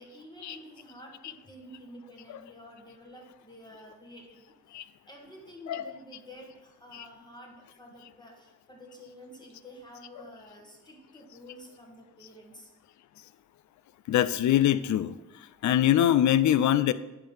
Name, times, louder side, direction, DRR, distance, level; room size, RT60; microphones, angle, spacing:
voice 1, 0.0-4.8 5.1-12.7, equal, 15° left, 0 dB, 1.6 m, -49 dB
voice 2, 14.1-15.2 15.6-16.9, left 11 dB, 70° left, 16 dB, 0.5 m, -23 dB
10.0 x 3.8 x 5.5 m, 1.0 s
cardioid pair, 105°, 30 cm